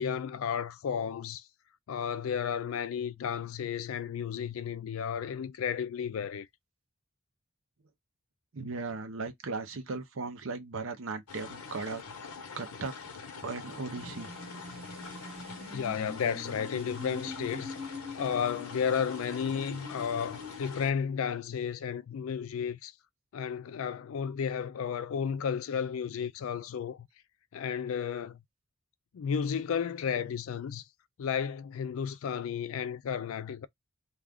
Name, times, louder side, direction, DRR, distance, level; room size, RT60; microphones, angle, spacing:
voice 1, 0.0-1.5 1.9-6.5 15.7-17.7 18.1-22.9 23.3-27.1 27.5-28.4 29.1-30.8 31.2-33.7, left 7 dB, 65° left, 0.3 m, -33 dB
voice 2, 8.5-12.0 12.5-12.9 13.3-14.3, right 4 dB, 60° right, 0.6 m, -37 dB
sound 1, 11.3-20.9, left 5 dB, 85° left, 0.7 m, -45 dB
sound 2, 14.0-20.6, left 2 dB, 30° right, 0.9 m, -44 dB
2.4 x 2.4 x 3.3 m
head